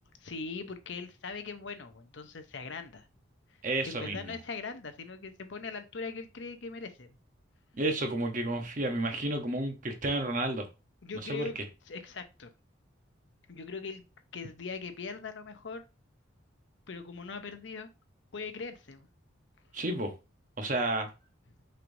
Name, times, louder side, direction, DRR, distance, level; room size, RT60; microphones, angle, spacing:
voice 1, 0.2-3.1 3.8-7.1 11.0-11.6 11.9-12.5 13.5-14.0 14.3-15.8 16.9-17.9 18.3-19.1, left 4 dB, 65° left, 0.7 m, -40 dB
voice 2, 3.6-4.4 7.7-10.7 11.2-11.5 19.7-20.1 20.6-21.1, right 2 dB, 40° right, 0.9 m, -31 dB
5.8 x 3.3 x 2.6 m
head